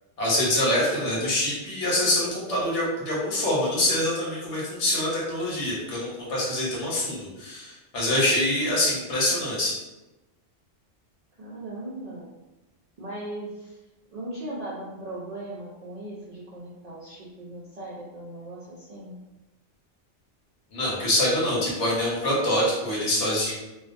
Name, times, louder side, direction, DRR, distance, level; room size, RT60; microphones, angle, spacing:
voice 1, 0.2-9.7 20.7-23.5, left 1 dB, 85° left, -5 dB, 1.2 m, -25 dB
voice 2, 11.4-12.3 13.0-13.8 14.1-19.2, right 1 dB, 65° right, -6 dB, 0.4 m, -38 dB
2.4 x 2.3 x 2.5 m, 1.0 s
omnidirectional pair, 1.2 m